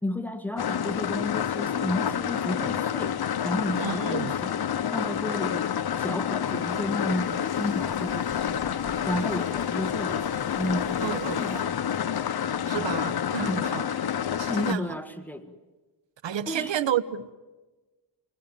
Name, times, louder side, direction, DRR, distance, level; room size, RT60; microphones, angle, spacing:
voice 1, 0.0-3.2 3.4-4.6 4.9-8.7 9.1-12.2 13.4-13.7 14.5-15.5 16.5-16.8, left 1 dB, 5° left, 1.8 m, -32 dB
sound 1, 0.6-14.7, left 9 dB, 55° left, 1.0 m, -28 dB
voice 2, 3.8-4.3 11.0-11.5 12.7-13.8 14.4-14.9 16.2-17.3, right 10 dB, 75° right, 1.1 m, -30 dB
sound 2, 6.4-11.6, equal, 15° right, 6.4 m, -49 dB
27.5 x 20.5 x 9.1 m
cardioid pair, 95°, 44 cm